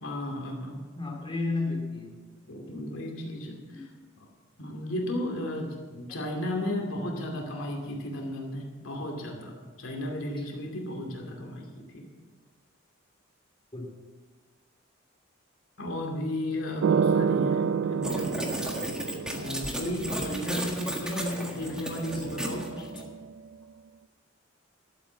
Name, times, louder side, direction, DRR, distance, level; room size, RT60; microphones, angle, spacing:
voice 1, 0.0-0.8 2.5-3.9 4.2-4.3 4.6-12.0 15.8-18.3 19.3-22.6, left 1 dB, 90° left, 1 dB, 2.5 m, -34 dB
voice 2, 0.9-2.2 3.7-3.8 13.7-13.9 21.0-21.5 22.8-23.1, left 3 dB, 25° left, 0 dB, 2.6 m, -33 dB
sound 1, 16.8-19.9 21.6-23.3, right 6 dB, 65° right, 0.3 m, -29 dB
sound 2, 18.0-23.0, equal, 5° right, 1.6 m, -34 dB
12.0 x 8.7 x 7.4 m, 1.4 s
head